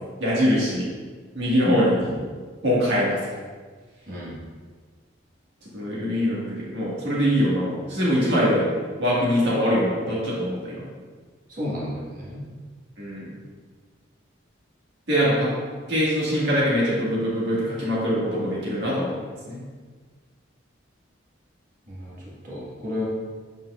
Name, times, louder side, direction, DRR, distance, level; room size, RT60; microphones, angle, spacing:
voice 1, 0.2-0.9 1.3-2.0 2.6-3.2 5.7-8.7 9.0-10.8 13.0-13.3 15.1-15.5 15.9-19.2 19.5-19.6, equal, 60° right, -7 dB, 1.8 m, -23 dB
voice 2, 4.1-4.4 11.5-12.4 21.9-22.2 22.4-23.0, left 1 dB, 40° right, -6 dB, 1.6 m, -32 dB
7.1 x 5.5 x 2.4 m, 1.5 s
head